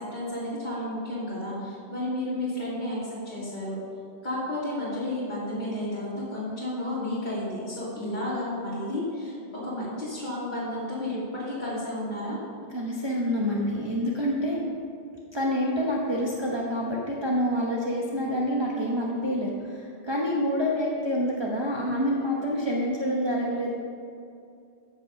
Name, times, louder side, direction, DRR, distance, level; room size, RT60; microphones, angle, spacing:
voice 1, 0.1-3.8 4.2-12.4, left 1 dB, 45° left, -10 dB, 2.7 m, -32 dB
voice 2, 12.7-14.6 15.3-23.7, equal, 25° right, -5 dB, 1.0 m, -27 dB
14.0 x 5.5 x 5.2 m, 2.5 s
omnidirectional pair, 1.1 m